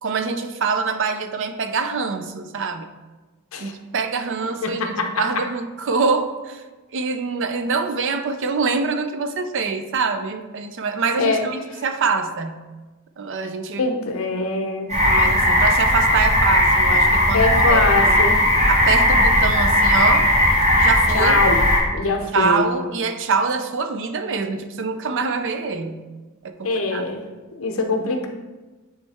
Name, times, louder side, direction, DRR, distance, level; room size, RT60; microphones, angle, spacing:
voice 1, 0.0-2.9 3.6-6.6 6.9-12.6 13.2-13.9 15.0-18.2 18.7-20.3 20.8-21.4 22.3-26.0 26.4-27.0, right 4 dB, 60° right, 8 dB, 0.5 m, -24 dB
voice 2, 4.6-5.1 11.2-11.4 13.8-14.9 17.3-18.4 21.1-21.6 21.9-22.7 26.6-27.2 27.6-28.3, left 3 dB, 65° left, 4 dB, 0.7 m, -22 dB
sound 1, 14.9-21.8, left 1 dB, 30° right, 1.7 m, -17 dB
9.1 x 3.3 x 3.4 m, 1.2 s
head